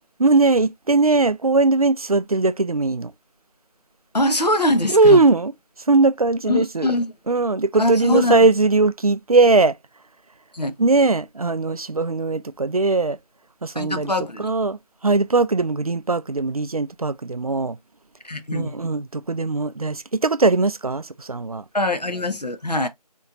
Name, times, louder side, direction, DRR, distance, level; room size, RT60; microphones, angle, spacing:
voice 1, 0.2-3.1 4.9-5.5 5.9-6.9 7.3-9.8 10.8-13.2 13.6-14.1 14.4-17.8 18.5-21.6, right 3 dB, 65° right, 0.4 m, -19 dB
voice 2, 4.1-5.2 6.5-7.1 7.8-8.3 10.5-10.7 13.7-14.5 18.2-18.7 21.7-22.9, left 1 dB, 90° left, 1.0 m, -22 dB
4.3 x 3.0 x 2.5 m
figure-of-eight pair, 175°, 20 cm